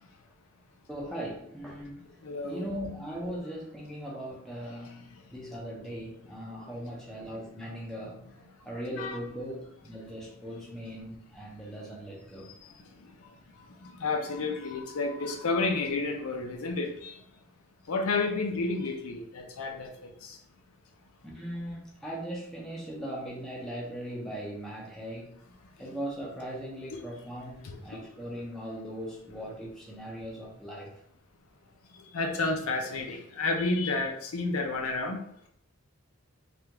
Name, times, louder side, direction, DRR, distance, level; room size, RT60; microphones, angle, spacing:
voice 1, 0.9-2.1 2.4-8.2 8.6-12.6 21.2-25.4 25.8-30.9, equal, ahead, 0.6 m, -39 dB
voice 2, 2.2-2.6 9.0-9.2 12.7-13.3 13.8-17.2 17.9-20.4 27.6-27.8 28.1-28.2 31.9-35.2, left 3 dB, 75° left, 0.5 m, -31 dB
3.4 x 2.4 x 2.9 m
head